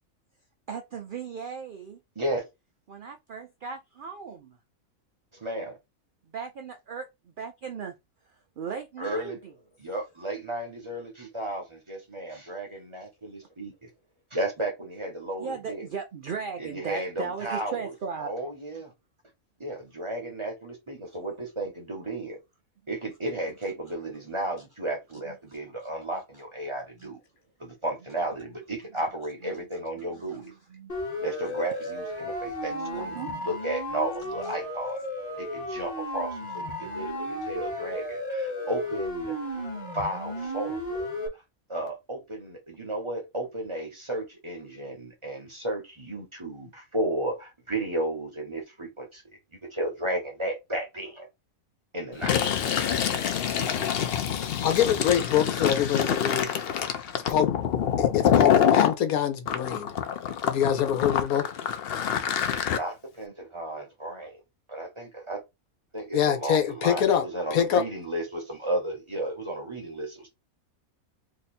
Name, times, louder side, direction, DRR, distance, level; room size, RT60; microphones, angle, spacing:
voice 1, 0.7-2.0 2.9-4.6 6.3-7.9 8.6-9.5 15.4-18.3 27.0-27.1 30.0-30.9 31.8-31.9 32.7-33.3 34.4-34.5, right 6 dB, 80° right, 0.4 m, -37 dB
voice 2, 5.3-5.8 9.0-9.4 9.8-13.9 14.3-15.9 16.6-17.9 18.2-18.9 19.6-22.4 22.9-27.2 27.6-30.5 31.2-35.0 35.4-41.1 41.7-49.4 49.7-51.3 51.9-52.8 62.7-64.4 64.7-65.4 65.9-70.3, right 1 dB, 25° right, 0.7 m, -33 dB
Siren, 30.9-41.3, left 1 dB, 30° left, 1.2 m, -34 dB
Fill (with liquid), 52.1-58.9 59.5-62.8, left 8 dB, 60° left, 0.6 m, -25 dB
voice 3, 54.6-56.5 57.3-57.6 58.0-59.9 60.4-61.5 66.1-67.2 67.5-67.8, left 9 dB, 85° left, 1.2 m, -25 dB
2.9 x 2.6 x 4.1 m
omnidirectional pair, 1.5 m